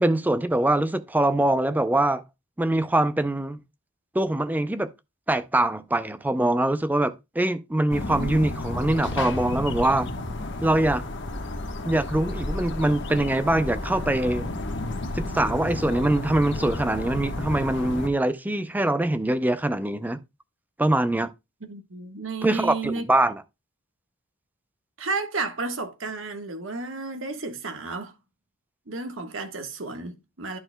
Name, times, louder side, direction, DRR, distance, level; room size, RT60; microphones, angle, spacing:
voice 1, 0.0-2.2 2.6-3.6 4.1-4.9 5.3-10.1 10.6-11.0 11.8-14.5 15.1-20.2 20.8-21.3 22.4-23.4, right 1 dB, 10° right, 0.5 m, -23 dB
sound 1, 7.9-18.1, left 2 dB, 60° left, 1.2 m, -32 dB
voice 2, 21.6-23.1 25.0-28.1 28.9-30.6, right 3 dB, 75° right, 1.4 m, -32 dB
11.0 x 6.5 x 2.2 m
head